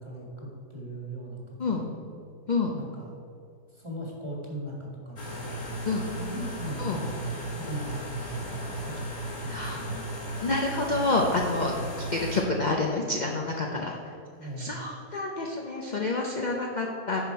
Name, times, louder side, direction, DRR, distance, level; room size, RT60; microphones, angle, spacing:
voice 1, 0.0-2.0 2.7-3.1 3.7-10.0 14.4-14.8, right 1 dB, 20° right, -2 dB, 1.6 m, -39 dB
sound 1, 5.2-12.4, right 1 dB, 30° left, 1.3 m, -35 dB
voice 2, 9.5-9.9 10.4-11.7 12.1-14.0 14.6-17.3, left 3 dB, 50° left, 0 dB, 0.5 m, -28 dB
9.4 x 5.9 x 4.6 m, 2.5 s
omnidirectional pair, 1.7 m